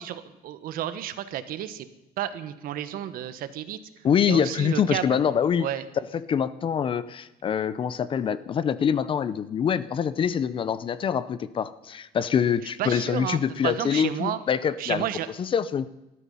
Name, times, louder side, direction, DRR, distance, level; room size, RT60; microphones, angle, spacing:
voice 1, 0.0-1.9 2.2-3.8 4.3-5.2 5.6-5.8 12.8-14.4 14.8-15.3, right 11 dB, 65° right, 12 dB, 1.3 m, -32 dB
voice 2, 4.0-5.7 6.0-15.1 15.4-15.9, left 7 dB, 35° left, 16 dB, 0.6 m, -25 dB
20.0 x 13.0 x 5.6 m, 0.97 s
cardioid pair, 160°, 16 cm